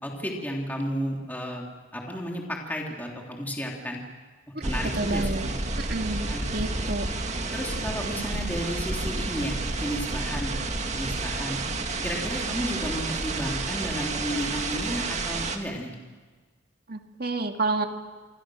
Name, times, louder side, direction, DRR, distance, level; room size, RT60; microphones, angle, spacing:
voice 1, 0.0-1.6 1.9-4.0 4.6-5.5 6.3-6.6 7.5-11.6 12.0-15.9, equal, 10° left, -1 dB, 3.0 m, -33 dB
sound 1, 4.6-15.6, right 2 dB, 40° right, 2.1 m, -30 dB
voice 2, 4.9-5.5 5.8-7.0 16.9-17.9, right 3 dB, 55° right, 5 dB, 2.1 m, -29 dB
27.5 x 25.5 x 6.3 m, 1.4 s
head